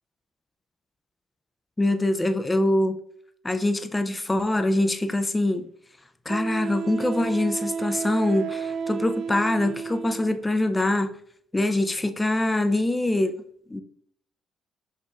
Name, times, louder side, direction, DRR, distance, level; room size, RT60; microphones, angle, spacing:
voice 1, 1.8-3.0 3.4-5.6 6.3-11.1 11.5-13.4 13.7-13.8, left 1 dB, 15° left, 9 dB, 0.4 m, -24 dB
Wind instrument woodwind instrument, 5.0-5.1 6.3-10.4, right 6 dB, 65° right, 0.3 m, -32 dB
6.4 x 2.9 x 2.4 m, 0.62 s
cardioid pair, 90°, 0 cm